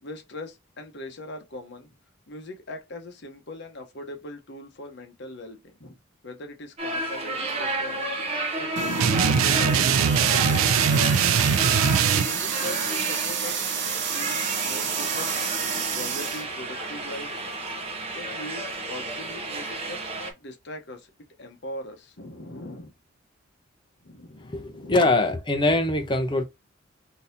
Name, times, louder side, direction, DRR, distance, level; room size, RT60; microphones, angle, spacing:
voice 1, 0.0-1.9 2.3-6.0 6.2-8.2 8.5-8.7 9.3-11.8 12.2-13.7 14.1-17.4 18.1-21.1 21.4-22.9 24.0-25.1, left 1 dB, 55° left, 0.9 m, -40 dB
sound 1, 6.8-20.3, right 2 dB, 30° right, 0.9 m, -31 dB
sound 2, 8.8-16.4, right 5 dB, 60° right, 0.8 m, -29 dB
sound 3, 9.0-12.2, right 7 dB, 85° right, 0.4 m, -21 dB
voice 2, 24.5-26.4, left 2 dB, 25° left, 0.7 m, -23 dB
3.8 x 2.8 x 2.6 m
head